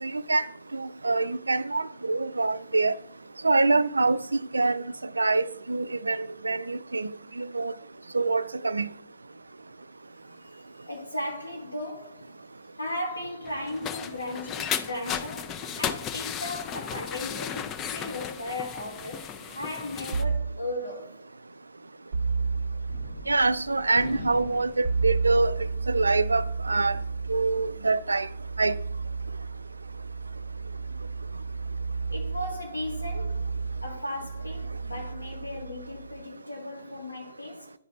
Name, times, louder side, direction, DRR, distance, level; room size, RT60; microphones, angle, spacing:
voice 1, 0.0-0.5 0.7-2.9 3.4-4.2 4.5-4.8 5.2-7.1 7.4-7.7 8.1-8.9 23.3-25.5 25.9-27.0 27.3-28.3 28.6-28.8, right 3 dB, 75° right, 0.3 m, -25 dB
voice 2, 10.4-12.4 12.8-21.2 32.1-33.5 33.8-37.7, left 1 dB, 90° left, 2.0 m, -36 dB
sound 1, 13.4-20.2, left 8 dB, 20° left, 0.4 m, -35 dB
sound 2, 20.1-20.6 22.1-23.1 24.8-36.2, right 4 dB, 55° right, 0.7 m, -32 dB
Gunshot gunfire, 22.9-29.5, left 2 dB, 50° left, 0.8 m, -45 dB
10.5 x 4.1 x 3.9 m
figure-of-eight pair, 120°, 0 cm